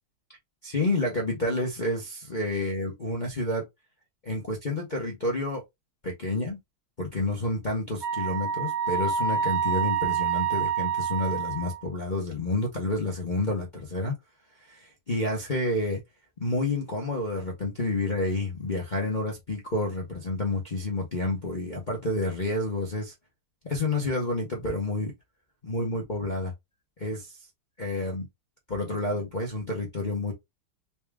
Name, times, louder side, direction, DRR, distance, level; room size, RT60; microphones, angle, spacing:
voice 1, 0.6-3.6 4.2-5.6 6.0-6.6 7.0-14.1 14.6-16.0 16.4-23.1 23.6-25.1 25.6-26.5 27.0-27.5 27.8-28.3 28.7-30.3, left 2 dB, 45° left, 0.6 m, -29 dB
Wind instrument woodwind instrument, 8.0-11.9, right 8 dB, 60° right, 1.0 m, -27 dB
4.2 x 2.4 x 3.4 m
omnidirectional pair, 2.3 m